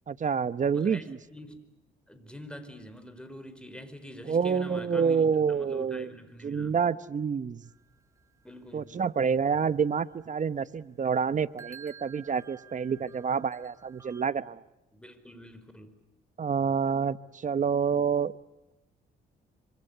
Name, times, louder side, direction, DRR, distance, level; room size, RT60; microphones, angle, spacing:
voice 1, 0.1-1.2 4.3-6.1 6.4-7.6 8.7-14.6 16.4-18.3, right 6 dB, 40° right, 15 dB, 1.1 m, -28 dB
voice 2, 0.7-1.6 2.1-6.8 8.4-8.9 14.9-15.9, equal, 5° left, 10 dB, 4.8 m, -45 dB
sound 1, 7.6-14.2, right 7 dB, 15° right, 2.8 m, -54 dB
26.5 x 25.5 x 8.1 m, 0.98 s
cardioid pair, 90°, 20 cm